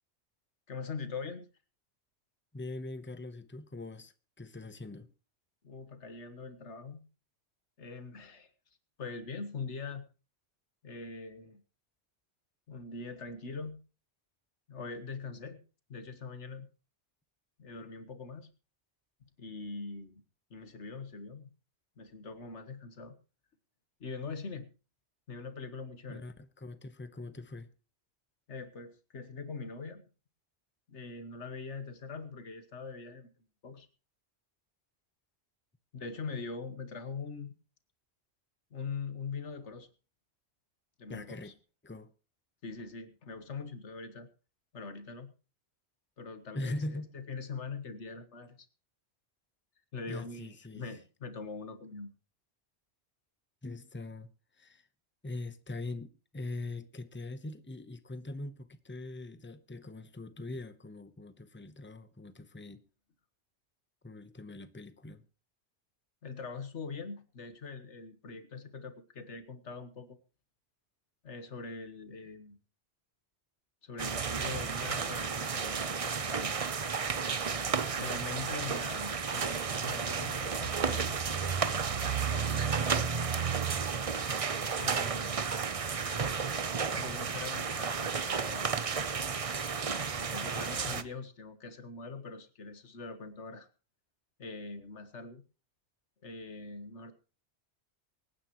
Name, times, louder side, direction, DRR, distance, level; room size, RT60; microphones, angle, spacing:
voice 1, 0.7-1.5 5.6-7.1 7.8-8.5 9.0-10.0 10.8-11.6 12.7-13.8 14.7-15.6 15.9-16.7 17.6-18.5 19.2-20.2 20.5-21.5 22.0-23.1 24.0-24.7 25.3-26.3 28.5-30.1 30.9-33.3 33.6-33.9 35.9-37.5 38.7-39.9 41.0-41.5 42.6-44.3 44.7-45.3 46.2-48.6 49.9-52.1 66.2-70.2 71.2-72.6 73.8-76.6 78.0-81.1 82.2-83.1 84.8-85.4 86.9-88.7 89.8-93.7 94.4-95.4 96.2-97.1, left 4 dB, 85° left, 1.7 m, -42 dB
voice 2, 2.5-5.1 26.1-27.7 41.1-41.5 41.8-42.1 46.5-47.1 50.1-50.9 53.6-54.3 54.6-54.9 55.2-62.8 64.0-65.2 82.2-83.0, left 2 dB, 10° left, 0.8 m, -42 dB
sound 1, 74.0-91.0, right 6 dB, 35° right, 0.7 m, -32 dB
24.0 x 9.7 x 3.0 m
omnidirectional pair, 1.2 m